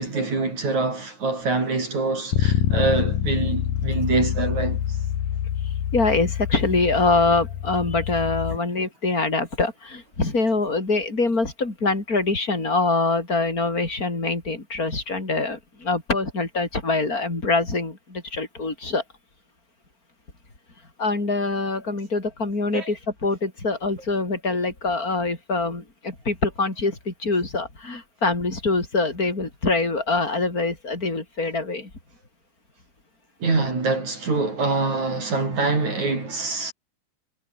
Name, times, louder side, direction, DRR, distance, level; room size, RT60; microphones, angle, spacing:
voice 1, 0.0-4.8 22.7-22.9 33.4-36.7, right 3 dB, 50° right, 7.6 m, -25 dB
Bass guitar, 2.3-8.6, left 10 dB, 65° left, 3.3 m, -26 dB
voice 2, 5.9-19.0 21.0-31.9, left 3 dB, 20° left, 5.9 m, -24 dB
omnidirectional pair, 4.4 m